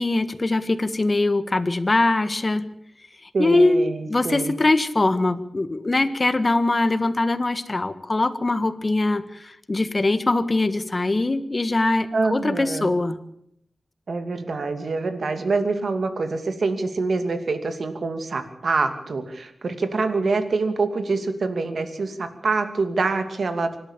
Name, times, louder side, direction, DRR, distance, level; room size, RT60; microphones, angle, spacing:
voice 1, 0.0-2.7 3.4-3.8 4.1-13.2, left 2 dB, 30° left, 12 dB, 1.5 m, -22 dB
voice 2, 3.3-4.5 12.1-12.9 14.1-23.8, right 3 dB, 65° right, 8 dB, 2.6 m, -25 dB
25.5 x 12.5 x 8.8 m, 0.72 s
wide cardioid pair, 115°, 0 cm